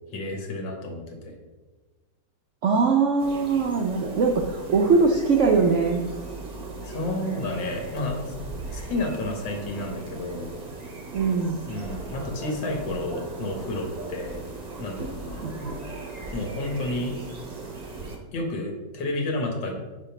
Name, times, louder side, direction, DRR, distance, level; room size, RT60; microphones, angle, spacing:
voice 1, 0.1-1.3 6.8-8.3 8.7-10.5 11.7-14.4 14.8-15.5 16.3-17.1 18.3-19.7, left 2 dB, 90° left, 2 dB, 1.9 m, -31 dB
voice 2, 2.6-6.0 11.1-11.7 15.4-15.7, right 4 dB, 75° right, 2 dB, 0.6 m, -22 dB
sound 1, 3.2-18.2, right 3 dB, 35° right, 0.7 m, -38 dB
5.2 x 4.8 x 5.8 m, 1.2 s
omnidirectional pair, 1.9 m